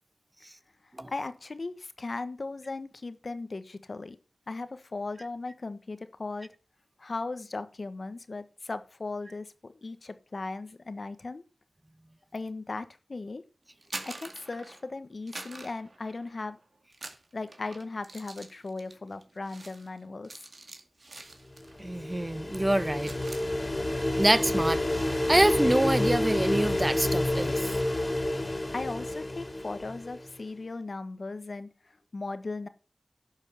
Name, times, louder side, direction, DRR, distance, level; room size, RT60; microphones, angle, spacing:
voice 1, 1.1-4.2 4.5-6.5 7.0-11.4 12.3-13.4 14.0-16.6 17.3-20.3 28.7-32.7, left 3 dB, 65° left, 1.2 m, -37 dB
sound 1, 13.7-14.9 15.3-16.5 16.9-21.8 22.1-22.4 22.7-23.5, right 2 dB, 65° right, 2.3 m, -45 dB
sound 2, 21.5-30.3, left 1 dB, 30° left, 2.7 m, -29 dB
voice 2, 21.8-23.1 24.2-24.8 25.3-27.7, right 1 dB, 25° right, 1.1 m, -25 dB
11.5 x 7.2 x 6.8 m
wide cardioid pair, 45°, 0 cm